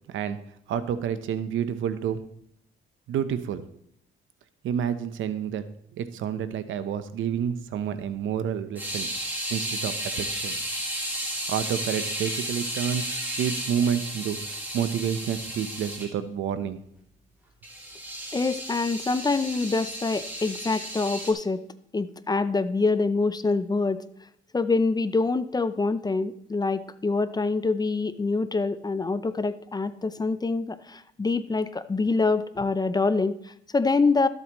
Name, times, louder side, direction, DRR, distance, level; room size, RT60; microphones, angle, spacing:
voice 1, 0.7-2.2 3.1-3.6 4.6-5.6 5.9-9.1 9.5-10.6 11.5-14.4 14.7-16.8, right 8 dB, 75° right, 11 dB, 0.8 m, -29 dB
sound 1, 8.8-16.1 17.6-21.3, right 1 dB, 10° right, 2.7 m, -33 dB
voice 2, 18.3-21.6 21.9-24.0 24.5-34.3, left 3 dB, 20° left, 14 dB, 0.5 m, -25 dB
13.0 x 7.9 x 3.0 m, 0.72 s
cardioid pair, 90°, 20 cm